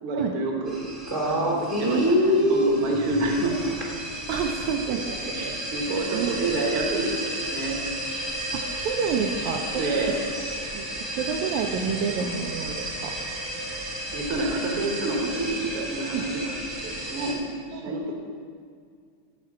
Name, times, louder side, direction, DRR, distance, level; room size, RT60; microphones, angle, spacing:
voice 1, 0.0-0.8 1.2-3.8 4.9-7.8 9.7-10.2 14.1-18.2, right 2 dB, 55° right, 0 dB, 1.9 m, -29 dB
sound 1, 0.7-17.3, equal, 25° right, 0.6 m, -29 dB
voice 2, 4.3-5.1 5.3-5.6 6.1-6.4 8.5-9.8 10.7-10.8 11.2-13.1 16.1-16.3 17.7-17.9, right 6 dB, 80° right, 3 dB, 1.9 m, -28 dB
12.5 x 4.5 x 7.2 m, 2.1 s
omnidirectional pair, 3.4 m